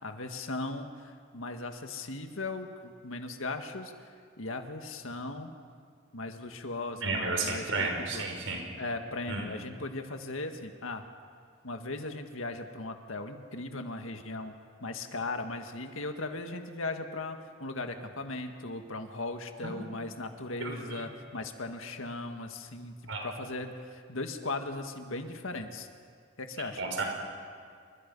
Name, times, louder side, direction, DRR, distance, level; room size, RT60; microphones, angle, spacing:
voice 1, 0.0-3.9 4.4-5.5 6.1-7.9 8.1-8.3 8.8-11.0 11.6-14.5 14.8-22.9 23.2-25.9 26.4-26.8, left 2 dB, 80° left, 5 dB, 1.9 m, -38 dB
voice 2, 7.0-8.6 9.3-9.5 19.6-19.8 20.6-20.7 23.1-23.3 26.8-27.0, right 3 dB, 70° right, 1 dB, 5.8 m, -32 dB
29.0 x 25.0 x 5.5 m, 2.2 s
head